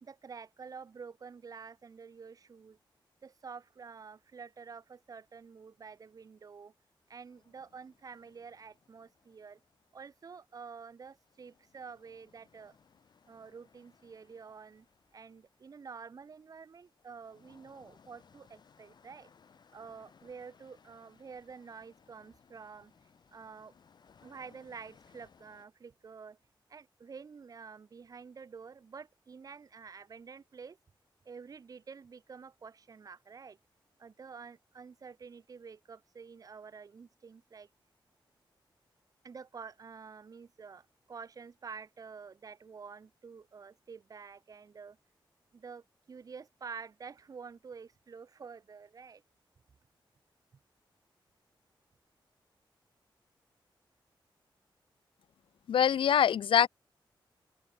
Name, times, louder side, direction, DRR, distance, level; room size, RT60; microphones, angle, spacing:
voice 1, 0.0-2.8 3.2-6.7 7.1-9.6 9.9-12.8 13.3-14.9 15.1-19.3 19.7-22.9 23.3-23.7 24.2-26.4 26.7-30.8 31.3-33.6 34.0-37.7 39.2-45.0 45.5-49.2, right 5 dB, 45° right, 1.7 m, -49 dB
sound 1, 7.2-10.7 11.0-25.6, left 6 dB, 55° left, 5.6 m, -65 dB
voice 2, 55.7-56.7, left 9 dB, 85° left, 0.5 m, -24 dB
open air
wide cardioid pair, 175°, 9 cm